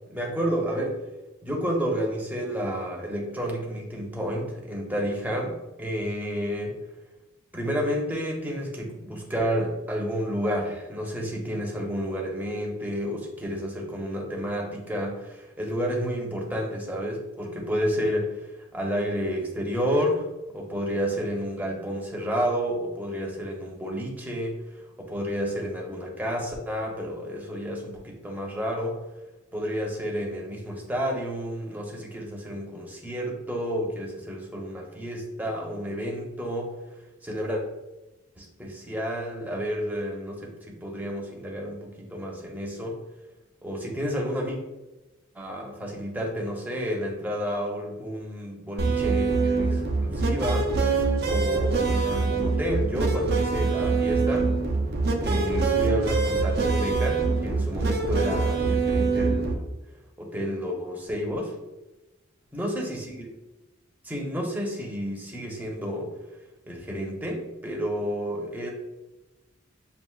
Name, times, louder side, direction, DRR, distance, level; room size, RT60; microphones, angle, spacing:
voice 1, 0.1-1.0 1.4-6.8 7.5-20.3 20.5-24.6 25.0-29.0 29.5-37.6 38.4-43.0 43.6-44.6 45.3-50.7 51.2-54.5 55.2-59.7 60.2-61.5 62.5-63.3 64.0-66.1 66.7-68.7, equal, 10° right, -2 dB, 0.7 m, -30 dB
sound 1, 48.8-59.5, right 4 dB, 50° right, 0.5 m, -24 dB
7.2 x 2.5 x 2.3 m, 1.0 s
head